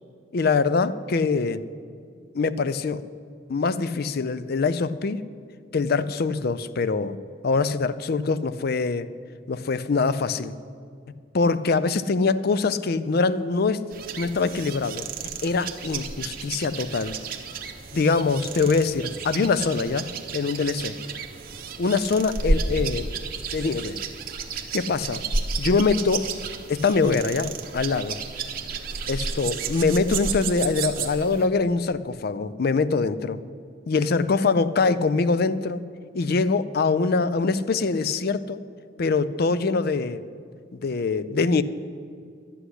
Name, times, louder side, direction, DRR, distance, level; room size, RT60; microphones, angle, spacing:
voice 1, 0.3-1.6 2.3-3.0 3.5-5.2 5.7-7.2 7.4-9.1 9.5-10.5 11.3-13.9 14.2-15.1 15.4-17.2 17.9-21.0 21.8-23.1 23.5-24.0 24.7-25.2 25.6-26.3 26.7-28.2 29.1-33.4 33.9-35.8 36.1-38.6 39.0-40.2 40.7-41.6, left 4 dB, 55° left, 15 dB, 0.5 m, -23 dB
sound 1, 13.9-31.5, right 4 dB, 50° right, 1.0 m, -32 dB
11.5 x 8.0 x 9.9 m, 2.3 s
head